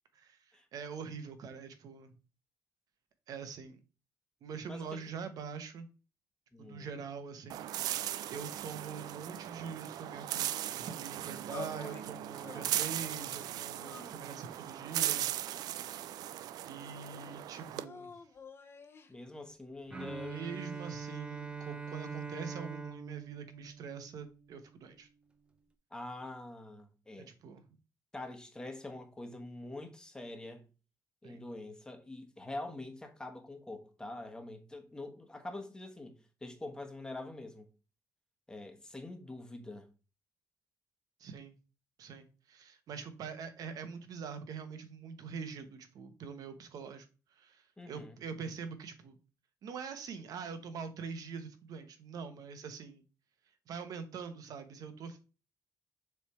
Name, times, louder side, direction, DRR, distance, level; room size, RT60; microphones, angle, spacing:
voice 1, 0.1-2.1 3.3-3.8 4.4-5.9 6.6-15.3 16.7-18.1 20.3-25.1 27.2-27.7 31.2-31.4 41.2-41.6 42.0-49.2 49.6-53.0 53.7-55.2, right 6 dB, 70° right, 1.0 m, -44 dB
voice 2, 6.5-6.9 19.1-20.4 25.9-27.3 28.1-30.6 31.2-37.7 38.5-39.9 47.8-48.2, left 2 dB, 10° left, 1.2 m, -45 dB
sound 1, 7.5-17.8, right 12 dB, 90° right, 0.3 m, -38 dB
sound 2, 11.5-12.1 12.4-13.1 13.7-14.6 15.4-16.4 17.8-19.1, left 4 dB, 40° left, 0.8 m, -49 dB
Bowed string instrument, 19.9-24.8, right 5 dB, 15° right, 0.6 m, -43 dB
6.8 x 3.3 x 4.4 m
cardioid pair, 125°, 7 cm